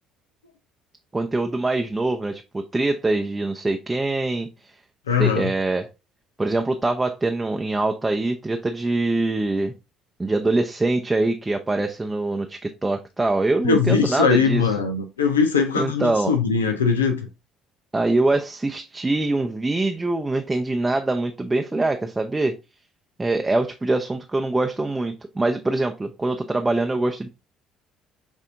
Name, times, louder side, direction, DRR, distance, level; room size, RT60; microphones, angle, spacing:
voice 1, 1.1-4.5 5.2-5.9 6.4-9.7 10.2-14.6 15.8-16.3 17.9-22.5 23.2-27.3, right 2 dB, 15° right, 0.5 m, -23 dB
voice 2, 5.1-5.5 13.6-17.3, left 5 dB, 90° left, 0.5 m, -21 dB
6.5 x 2.7 x 2.5 m
hypercardioid pair, 55°, 0 cm